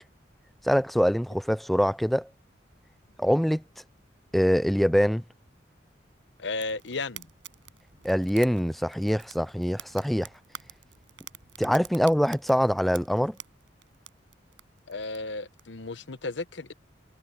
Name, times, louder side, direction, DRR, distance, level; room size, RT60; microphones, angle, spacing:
voice 1, 0.6-2.3 3.2-3.6 4.3-5.2 8.0-10.3 11.6-13.4, equal, ahead, 0.4 m, -24 dB
voice 2, 6.4-7.3 14.9-16.7, left 3 dB, 80° left, 1.0 m, -34 dB
Fire, 6.6-15.6, right 10 dB, 85° right, 6.2 m, -49 dB
head